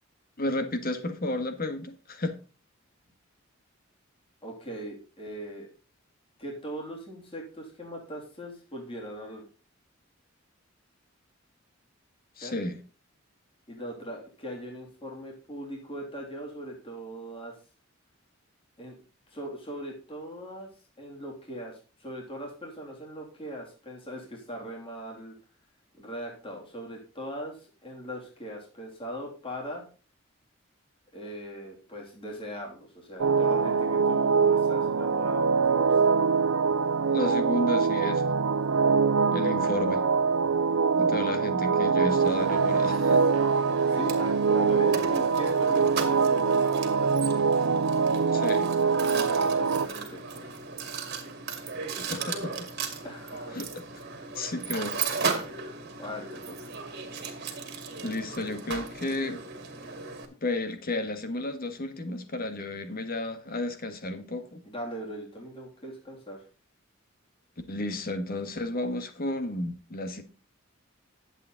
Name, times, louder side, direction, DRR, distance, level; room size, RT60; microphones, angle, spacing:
voice 1, 0.4-2.4 12.4-12.8 37.1-38.2 39.3-40.1 41.0-43.2 48.3-48.7 51.9-52.7 53.5-53.8 54.3-55.0 58.0-59.4 60.4-64.6 67.7-70.2, left 2 dB, 45° left, 1.7 m, -32 dB
voice 2, 4.4-5.7 6.4-9.4 12.4-12.5 13.7-17.5 18.8-19.0 19.3-20.7 21.0-25.3 25.9-29.8 31.1-36.2 43.8-47.3 49.1-50.6 53.0-53.6 56.0-56.7 64.6-66.4, equal, 25° left, 3.2 m, -40 dB
sound 1, 33.2-49.9, right 5 dB, 85° right, 0.7 m, -24 dB
Mechanisms, 42.1-60.2, right 5 dB, 55° right, 2.4 m, -36 dB
11.0 x 8.3 x 4.0 m
head